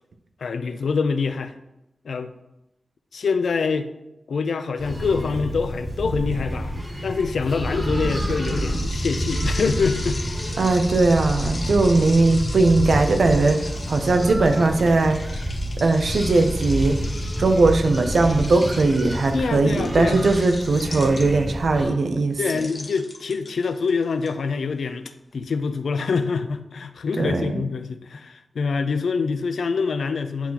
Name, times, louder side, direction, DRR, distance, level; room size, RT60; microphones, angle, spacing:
voice 1, 0.4-1.5 2.0-2.3 3.1-3.9 4.3-6.7 7.0-10.2 19.3-20.3 22.4-30.5, left 5 dB, 90° left, 10 dB, 0.4 m, -25 dB
sound 1, 4.8-21.9, right 1 dB, 25° right, 1.9 m, -28 dB
sound 2, 8.0-21.6 22.4-24.3, left 2 dB, 50° left, 1.3 m, -38 dB
voice 2, 10.6-15.2 15.8-17.0 17.4-22.4 27.2-27.6, right 3 dB, 70° right, 6 dB, 0.6 m, -19 dB
9.9 x 3.8 x 2.9 m, 0.89 s
wide cardioid pair, 85°, 0 cm